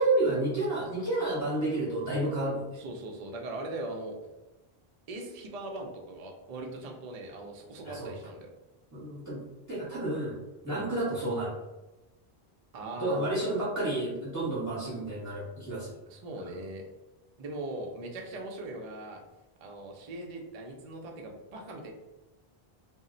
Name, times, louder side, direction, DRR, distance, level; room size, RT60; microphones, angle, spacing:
voice 1, 0.0-2.6 7.8-8.1 8.9-9.4 9.7-10.3 10.6-11.5 13.0-15.9, right 2 dB, 20° right, -7 dB, 0.8 m, -30 dB
voice 2, 2.8-4.2 5.1-8.5 10.6-10.9 12.7-13.3 16.1-16.8 17.4-19.2 19.6-21.9, right 2 dB, 55° right, 1 dB, 0.4 m, -40 dB
2.0 x 2.0 x 3.7 m, 1.0 s
omnidirectional pair, 1.1 m